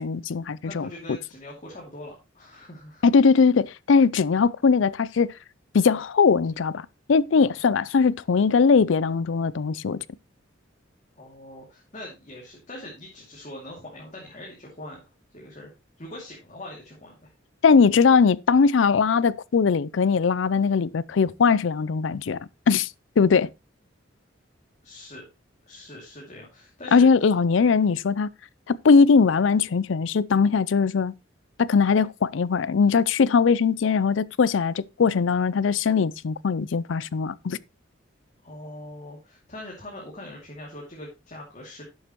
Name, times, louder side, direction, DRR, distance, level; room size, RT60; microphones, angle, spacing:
voice 1, 0.0-0.9 3.0-5.3 5.7-10.0 17.6-22.9 23.2-23.5 26.9-28.3 28.7-31.1 31.6-37.6, left 5 dB, 75° left, 0.5 m, -20 dB
voice 2, 0.6-3.0 7.4-7.5 11.2-15.7 16.0-17.3 24.8-25.2 25.7-27.1 38.4-41.8, left 1 dB, 40° left, 2.6 m, -42 dB
11.0 x 7.8 x 3.0 m
head